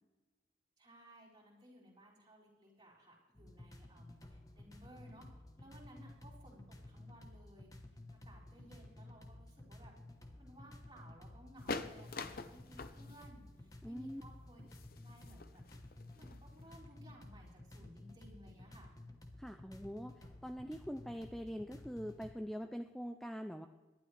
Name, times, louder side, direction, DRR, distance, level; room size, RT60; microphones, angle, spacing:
voice 1, 0.8-5.3 5.6-7.7 8.1-9.9 10.4-14.6 15.0-15.6 16.1-18.9, right 1 dB, 25° right, -5 dB, 4.1 m, -59 dB
sound 1, 3.4-22.3, left 1 dB, 20° left, 1.0 m, -54 dB
sound 2, 11.6-16.8, left 3 dB, 55° left, 0.7 m, -45 dB
voice 2, 13.8-14.2 19.4-23.7, equal, ahead, 6 dB, 0.4 m, -44 dB
19.0 x 12.0 x 3.3 m, 1.3 s
head